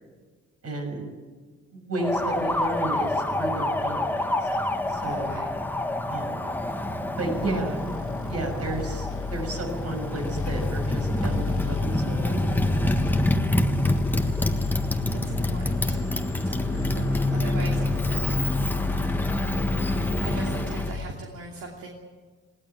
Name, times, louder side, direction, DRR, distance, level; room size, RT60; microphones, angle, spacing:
voice 1, 0.6-1.1 1.7-4.5 4.9-5.3 6.1-6.5 7.2-7.8 8.3-12.7, right 2 dB, 55° right, 3 dB, 6.5 m, -32 dB
Motorcycle, 2.0-21.0, left 1 dB, 5° left, 1.4 m, -27 dB
voice 2, 5.0-5.5 13.3-13.9 15.1-16.1 16.4-18.4 20.2-21.9, right 3 dB, 75° right, -1 dB, 2.9 m, -40 dB
sound 1, 7.3-21.1, left 4 dB, 45° left, 1.8 m, -32 dB
19.5 x 17.5 x 9.1 m, 1.4 s
cardioid pair, 90°, 30 cm